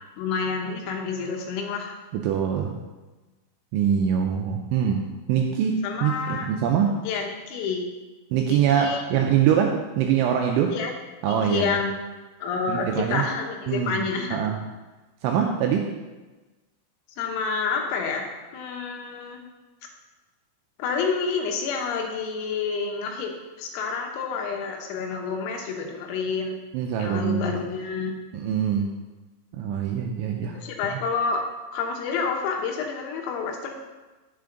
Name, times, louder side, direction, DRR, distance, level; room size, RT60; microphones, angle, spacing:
voice 1, 0.2-2.0 5.5-6.5 7.0-7.9 8.5-9.0 10.7-10.9 11.5-12.0 12.4-14.4 17.2-18.3 18.5-19.4 20.8-26.6 27.0-28.1 30.5-31.4 31.7-33.7, left 5 dB, 85° left, 2 dB, 3.8 m, -29 dB
voice 2, 2.1-2.8 3.7-5.0 5.3-6.9 8.3-10.7 11.2-11.8 12.7-13.2 13.7-14.6 15.2-15.9 26.7-27.5 28.3-28.9 29.5-30.6, right 8 dB, 85° right, 2 dB, 2.7 m, -24 dB
9.3 x 7.7 x 3.9 m, 1.2 s
omnidirectional pair, 6.0 m